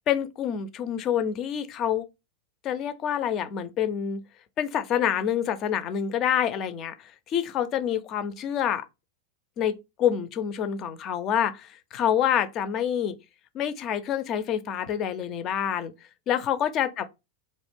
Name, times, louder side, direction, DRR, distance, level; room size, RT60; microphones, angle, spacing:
voice 1, 0.1-2.1 2.6-4.2 4.6-8.8 9.6-13.2 13.5-15.9 16.3-17.0, left 9 dB, 35° left, 0.3 m, -27 dB
2.4 x 2.1 x 3.3 m
figure-of-eight pair, 90°, 0 cm